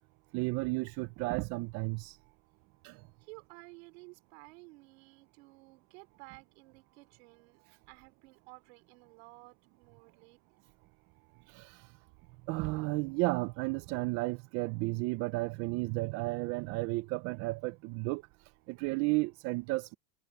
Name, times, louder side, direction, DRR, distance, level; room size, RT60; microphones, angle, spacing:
voice 1, 0.3-2.2 2.8-3.0 11.5-11.8 12.5-18.2 18.7-20.0, right 23 dB, 50° right, 0.5 m, -33 dB
voice 2, 3.2-7.6 7.9-10.4, right 26 dB, 80° right, 3.8 m, -54 dB
cardioid pair, 155°, 31 cm